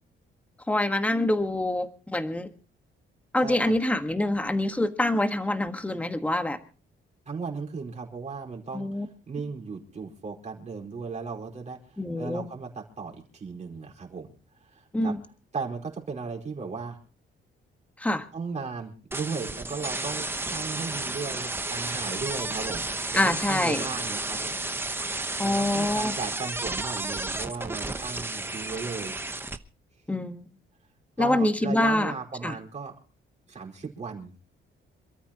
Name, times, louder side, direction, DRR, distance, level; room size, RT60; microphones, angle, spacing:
voice 1, 0.7-2.5 3.3-6.6 8.7-9.1 12.0-12.5 14.9-15.2 18.0-18.2 23.1-23.8 25.4-26.2 30.1-30.5 31.2-32.1 32.4-32.6, left 1 dB, 5° left, 7 dB, 1.4 m, -25 dB
voice 2, 3.4-3.7 7.3-14.3 14.6-15.1 15.5-17.0 18.3-22.8 23.1-24.6 25.4-29.1 31.2-32.9 33.5-34.3, right 4 dB, 35° right, -1 dB, 4.6 m, -36 dB
sound 1, 19.1-29.6, right 2 dB, 10° right, 1.0 m, -32 dB
27.5 x 13.5 x 2.9 m, 0.38 s
cardioid pair, 150°, 21 cm